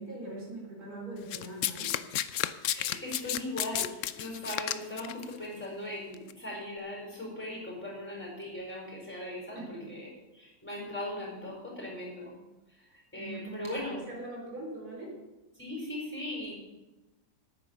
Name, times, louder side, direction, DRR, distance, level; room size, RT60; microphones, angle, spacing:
voice 1, 0.0-1.9 9.5-9.9 13.1-15.1, right 2 dB, 60° right, -2 dB, 4.2 m, -42 dB
Domestic sounds home sounds, 1.3-5.2 6.1-6.3, left 12 dB, 80° left, 0.7 m, -32 dB
voice 2, 2.7-10.1 10.3-12.3 12.9-14.0 15.6-16.5, left 1 dB, 5° left, -3 dB, 4.7 m, -39 dB
10.0 x 9.3 x 6.9 m, 1.1 s
omnidirectional pair, 1.9 m